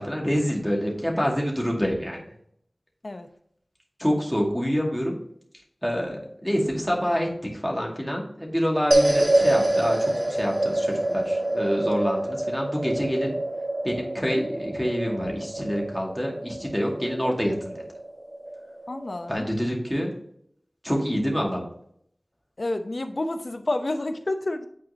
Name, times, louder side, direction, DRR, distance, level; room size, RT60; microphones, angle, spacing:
voice 1, 0.0-2.2 4.0-5.2 5.8-13.4 13.8-17.8 19.3-20.1 20.8-21.6, equal, 5° left, -2 dB, 2.1 m, -27 dB
sound 1, 8.9-19.3, right 1 dB, 35° right, 1.8 m, -26 dB
voice 2, 18.9-19.4 22.6-24.7, left 2 dB, 70° left, 7 dB, 0.7 m, -29 dB
9.3 x 4.4 x 2.8 m, 0.69 s
wide cardioid pair, 45°, 0 cm